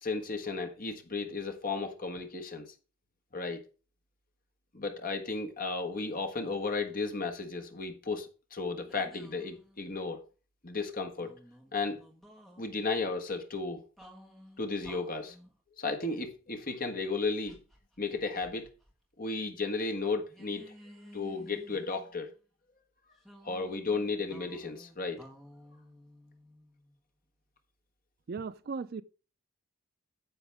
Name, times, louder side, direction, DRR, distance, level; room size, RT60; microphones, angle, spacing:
voice 1, 0.0-2.7 3.3-3.6 4.7-10.2 10.6-11.3 11.7-12.0 12.6-13.8 14.6-15.3 15.8-17.6 18.0-18.7 19.2-20.7 21.1-22.3 23.4-25.2, left 3 dB, 40° left, 1.4 m, -34 dB
sound 1, 8.9-10.2 11.1-12.6 14.0-15.6 17.5-18.9 19.2-19.3 20.3-22.4 23.2-27.0, equal, ahead, 1.6 m, -55 dB
voice 2, 28.3-29.0, right 5 dB, 45° right, 0.4 m, -37 dB
10.0 x 7.1 x 3.5 m
head